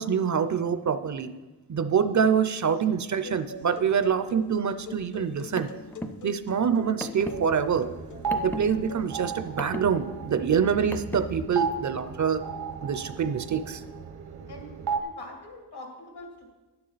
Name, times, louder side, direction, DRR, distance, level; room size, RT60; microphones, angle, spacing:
voice 1, 0.0-1.3 1.7-5.7 6.2-7.9 8.4-12.4 12.8-13.8, right 7 dB, 50° right, 12 dB, 0.5 m, -25 dB
sound 1, 3.2-9.1, left 2 dB, 50° left, 0.6 m, -43 dB
Car, 5.2-11.5, equal, 5° left, 0.4 m, -39 dB
sound 2, 7.3-15.0, right 5 dB, 75° right, 0.9 m, -35 dB
voice 2, 15.0-16.5, left 2 dB, 80° left, 2 dB, 2.4 m, -43 dB
11.5 x 9.7 x 4.0 m, 1.2 s
wide cardioid pair, 160°, 39 cm